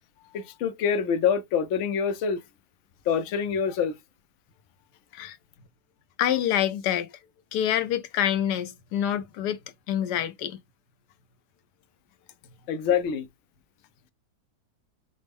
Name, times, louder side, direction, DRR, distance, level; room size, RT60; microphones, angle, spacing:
voice 1, 0.3-2.4 3.1-4.0 12.7-13.3, left 7 dB, 60° left, 0.8 m, -25 dB
voice 2, 6.2-7.1 7.5-9.6 9.9-10.6, left 10 dB, 85° left, 1.3 m, -26 dB
5.1 x 2.1 x 3.4 m
omnidirectional pair, 1.7 m